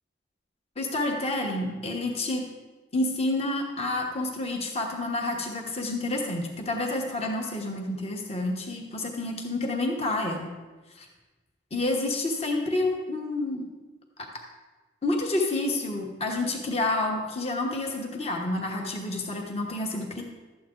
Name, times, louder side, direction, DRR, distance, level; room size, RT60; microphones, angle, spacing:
voice 1, 0.8-2.4 2.9-10.5 10.9-11.1 11.7-13.7 14.2-14.3 15.0-20.2, left 2 dB, 35° left, 1 dB, 1.2 m, -29 dB
12.5 x 8.4 x 3.8 m, 1.2 s
head